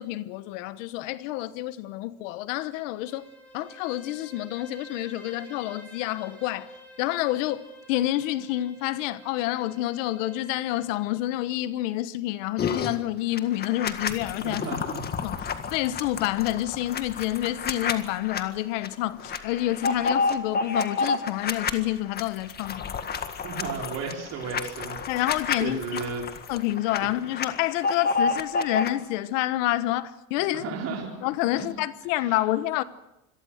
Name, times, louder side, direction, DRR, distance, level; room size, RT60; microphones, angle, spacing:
voice 1, 0.0-3.2 3.5-6.7 7.0-14.6 15.2-22.8 25.1-25.8 26.5-30.6 31.2-32.8, left 15 dB, 80° left, 1.2 m, -28 dB
Bowed string instrument, 2.8-11.1, right 1 dB, 5° left, 8.0 m, -49 dB
sound 1, 12.6-12.9 13.4-18.4 18.8-18.9 19.2-21.7 22.1-27.0 27.2-28.9, left 5 dB, 25° left, 1.8 m, -29 dB
voice 2, 14.4-15.0 23.4-25.0 25.6-26.2 27.0-27.1 30.5-31.1 31.5-31.7 32.2-32.4, right 5 dB, 40° right, 4.7 m, -34 dB
27.0 x 22.5 x 6.5 m
cardioid pair, 145°, 37 cm